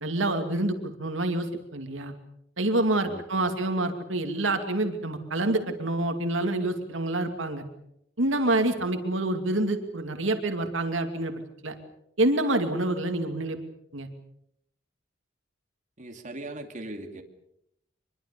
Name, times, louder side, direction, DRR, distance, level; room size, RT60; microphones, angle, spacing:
voice 1, 0.0-1.5 1.7-2.1 2.6-7.6 8.2-11.7 12.2-13.6 13.9-14.1, right 2 dB, 70° right, 6 dB, 2.6 m, -27 dB
voice 2, 3.1-3.5 8.7-8.9 16.0-17.2, right 2 dB, 40° right, 3 dB, 2.7 m, -40 dB
25.0 x 22.5 x 6.9 m, 0.77 s
head